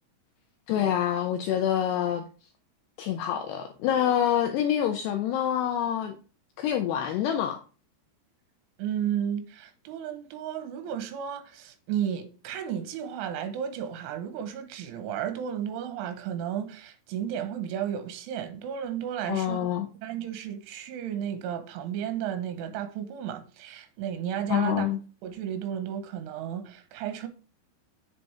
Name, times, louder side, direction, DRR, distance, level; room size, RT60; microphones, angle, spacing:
voice 1, 0.7-2.2 3.0-6.2 6.6-7.6 19.3-19.9 24.5-25.0, left 10 dB, 85° left, 2.3 m, -26 dB
voice 2, 8.8-19.7 20.0-24.9 25.2-27.3, right 9 dB, 75° right, 3.5 m, -33 dB
7.6 x 7.3 x 3.5 m
omnidirectional pair, 5.8 m